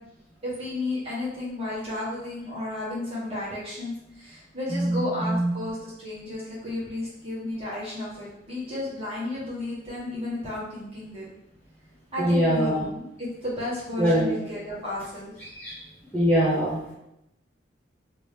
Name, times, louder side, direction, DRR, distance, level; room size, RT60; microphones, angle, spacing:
voice 1, 0.4-11.2 12.1-15.3, left 1 dB, 30° right, -8 dB, 1.4 m, -33 dB
voice 2, 4.7-5.5 12.2-12.8 14.0-14.3 15.6-15.8 16.1-16.9, equal, 10° left, -8 dB, 0.7 m, -23 dB
2.9 x 2.8 x 3.3 m, 0.83 s
head